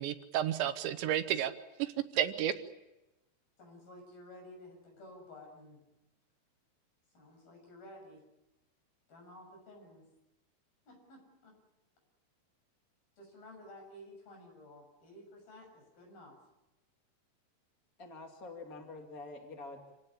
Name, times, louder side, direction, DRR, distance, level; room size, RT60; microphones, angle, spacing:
voice 1, 0.0-1.5 1.8-2.6, right 11 dB, 75° right, 10 dB, 3.2 m, -32 dB
voice 2, 3.6-5.8 7.1-8.2 9.1-10.1 10.9-11.6 13.2-16.4, left 1 dB, 50° left, 2 dB, 8.6 m, -53 dB
voice 3, 18.0-19.9, left 3 dB, 30° left, 2 dB, 1.6 m, -46 dB
27.5 x 17.0 x 10.0 m, 0.98 s
omnidirectional pair, 5.4 m